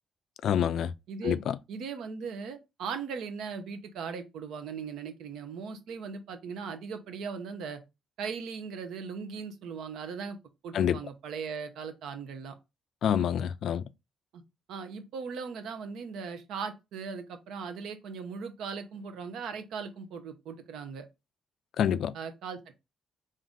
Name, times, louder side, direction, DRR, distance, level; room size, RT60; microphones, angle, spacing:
voice 1, 0.4-0.9 1.2-1.5 10.7-11.0 13.0-13.8 21.8-22.1, left 9 dB, 70° left, 0.3 m, -27 dB
voice 2, 1.1-1.4 1.7-7.8 8.2-10.4 10.6-12.5 14.3-14.4 14.7-21.1 22.1-22.7, right 5 dB, 80° right, 0.7 m, -38 dB
3.7 x 2.6 x 3.6 m
cardioid pair, 90°, 0 cm